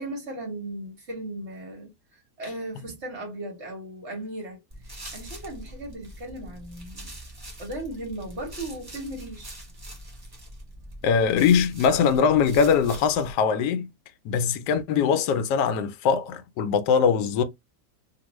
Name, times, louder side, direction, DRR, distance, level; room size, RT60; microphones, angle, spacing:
voice 1, 0.0-7.1 7.6-9.6, right 1 dB, 45° right, 1.3 m, -37 dB
sound 1, 4.7-13.3, right 1 dB, 25° right, 0.5 m, -43 dB
voice 2, 11.0-13.9 14.2-17.4, left 6 dB, 75° left, 1.1 m, -22 dB
2.9 x 2.5 x 3.0 m
omnidirectional pair, 1.9 m